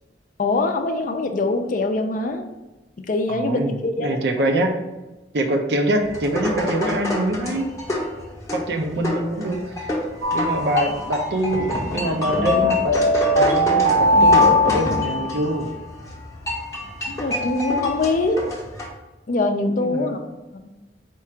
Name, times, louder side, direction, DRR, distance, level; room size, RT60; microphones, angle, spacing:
voice 1, 0.4-2.5 3.1-4.2 10.7-10.9 12.1-12.2 17.1-18.4 19.3-20.6, left 2 dB, 45° left, 6 dB, 0.4 m, -23 dB
voice 2, 3.3-4.8 5.3-7.7 8.5-9.9 10.3-15.7 19.8-20.1, right 1 dB, 65° right, 4 dB, 0.6 m, -24 dB
sound 1, 5.9-18.9, left 1 dB, 15° left, 0.7 m, -28 dB
sound 2, 10.2-11.3 12.4-15.6, left 1 dB, 85° right, 0.9 m, -19 dB
4.4 x 2.4 x 4.4 m, 1.1 s
head